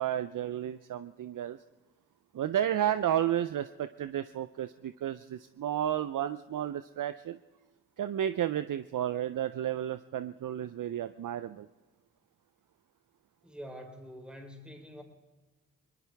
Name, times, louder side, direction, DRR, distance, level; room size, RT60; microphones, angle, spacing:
voice 1, 0.0-1.6 2.3-7.4 8.0-11.7, right 11 dB, 60° right, 12 dB, 0.6 m, -32 dB
voice 2, 13.4-15.0, equal, 5° right, 2 dB, 3.6 m, -46 dB
21.5 x 19.5 x 3.5 m, 1.3 s
supercardioid pair, 45°, 37 cm